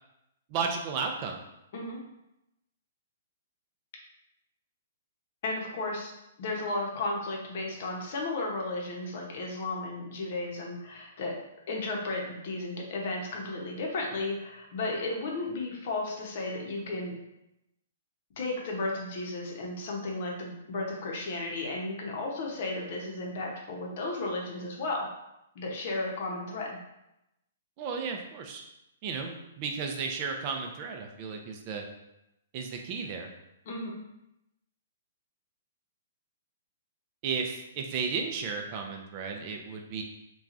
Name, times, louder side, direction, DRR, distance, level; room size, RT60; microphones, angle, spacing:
voice 1, 0.5-1.4 27.8-28.6 29.0-31.8 32.5-33.3 37.2-40.0, right 5 dB, 35° right, 3 dB, 0.4 m, -34 dB
voice 2, 5.4-6.1 6.4-11.4 11.7-17.1 18.4-25.1 25.5-26.8 33.7-34.0, left 2 dB, 55° left, -1 dB, 0.7 m, -34 dB
2.9 x 2.3 x 2.5 m, 0.87 s
hypercardioid pair, 145°, 0 cm